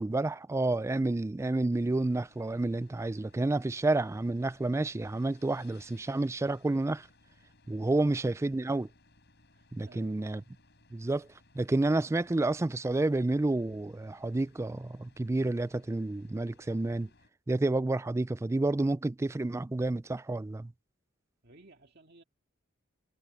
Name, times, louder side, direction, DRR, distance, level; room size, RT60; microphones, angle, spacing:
voice 1, 0.0-7.1 7.7-8.9 9.7-10.4 10.9-11.3 11.5-17.1 17.5-20.7, right 2 dB, 15° right, 0.3 m, -30 dB
sound 1, 1.7-17.3, left 2 dB, 55° left, 5.5 m, -63 dB
voice 2, 9.5-10.2 21.4-22.2, right 2 dB, 50° right, 2.1 m, -56 dB
head